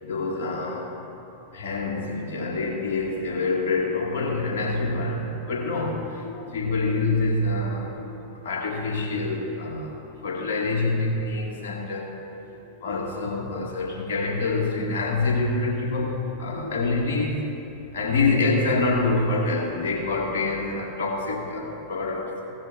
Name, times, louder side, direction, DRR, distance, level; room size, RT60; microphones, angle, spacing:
voice 1, 0.0-1.0 1.5-12.2 12.8-17.4 17.9-22.3, left 3 dB, 70° left, -1 dB, 2.2 m, -26 dB
16.5 x 13.5 x 2.7 m, 3.0 s
hypercardioid pair, 95°, 0 cm